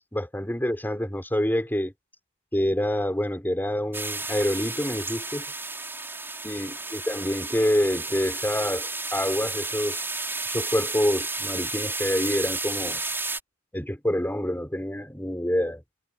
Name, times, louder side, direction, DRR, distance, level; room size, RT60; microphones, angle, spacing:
voice 1, 0.1-1.9 2.5-5.5 6.4-10.0 10.5-13.0 13.7-15.8, equal, 10° left, 5.9 m, -27 dB
sound 1, 3.9-13.4, right 3 dB, 10° right, 5.5 m, -32 dB
head